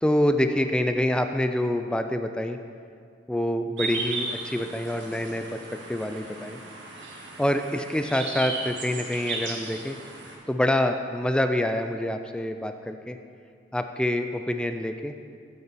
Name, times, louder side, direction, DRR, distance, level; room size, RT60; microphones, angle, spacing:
voice 1, 0.0-2.6 3.3-6.6 7.4-10.0 10.5-13.2 13.7-15.1, left 1 dB, 5° left, 7 dB, 0.3 m, -26 dB
sound 1, 3.8-10.3, right 3 dB, 80° right, 1.4 m, -36 dB
8.7 x 8.4 x 4.1 m, 2.3 s
head